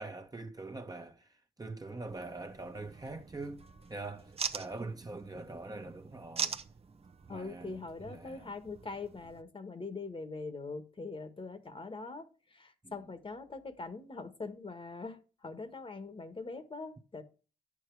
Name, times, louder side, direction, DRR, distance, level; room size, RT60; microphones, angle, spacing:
voice 1, 0.0-3.6 3.9-6.5 7.3-8.5 12.8-13.0, right 2 dB, 25° right, 1.3 m, -43 dB
sound 1, 2.1-9.4, right 5 dB, 40° right, 0.9 m, -43 dB
voice 2, 7.3-12.3 12.5-17.2, left 3 dB, 35° left, 1.5 m, -42 dB
9.9 x 7.4 x 4.7 m
cardioid pair, 70°, 16 cm